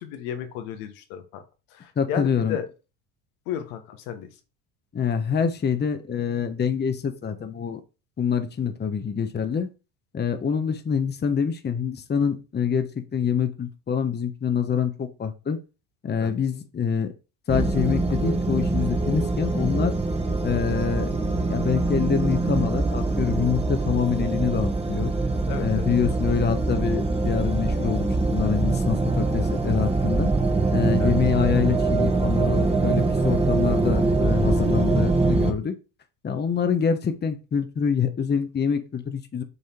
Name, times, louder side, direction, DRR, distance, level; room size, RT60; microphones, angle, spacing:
voice 1, 0.0-1.4 1.7-2.7 3.5-4.3 16.2-16.3 25.5-25.8 31.0-31.1, left 9 dB, 75° left, 7 dB, 1.4 m, -33 dB
voice 2, 2.0-2.6 4.9-7.8 8.2-9.7 10.1-15.6 16.0-17.1 17.5-19.9 20.4-21.1 21.5-25.1 25.6-30.3 30.7-35.7 36.2-39.4, left 7 dB, 25° left, 8 dB, 1.0 m, -25 dB
sound 1, 17.5-35.5, right 3 dB, 15° right, 1.3 m, -23 dB
6.7 x 3.5 x 4.5 m, 0.31 s
supercardioid pair, 85°, 43 cm